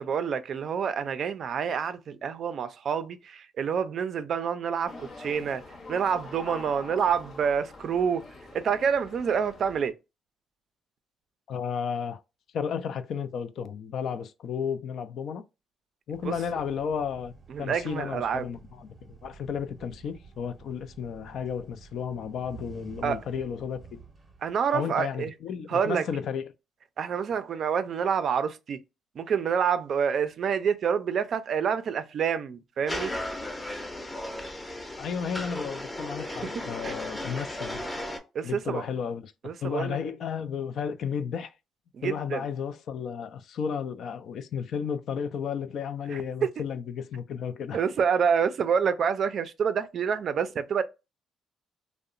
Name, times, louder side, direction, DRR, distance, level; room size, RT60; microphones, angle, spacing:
voice 1, 0.0-5.6 5.9-8.2 8.5-9.9 16.2-16.3 17.5-18.5 23.0-23.2 24.4-25.3 25.7-26.0 27.0-28.8 29.2-33.1 36.3-36.5 36.8-36.9 38.3-38.8 39.4-40.0 41.9-42.4 46.1-46.5 47.7-50.8, right 7 dB, 60° right, 0.3 m, -27 dB
sound 1, 4.9-9.9, left 2 dB, 50° left, 0.8 m, -44 dB
voice 2, 11.5-12.2 12.5-15.4 16.1-17.3 17.6-24.0 24.7-26.5 35.0-37.8 38.4-39.3 39.6-41.5 42.0-47.8, left 7 dB, 70° left, 0.3 m, -33 dB
sound 2, 16.1-25.2, right 5 dB, 30° right, 0.7 m, -50 dB
sound 3, 32.9-38.2, left 1 dB, 15° left, 0.6 m, -35 dB
2.7 x 2.0 x 2.4 m
cardioid pair, 90°, 0 cm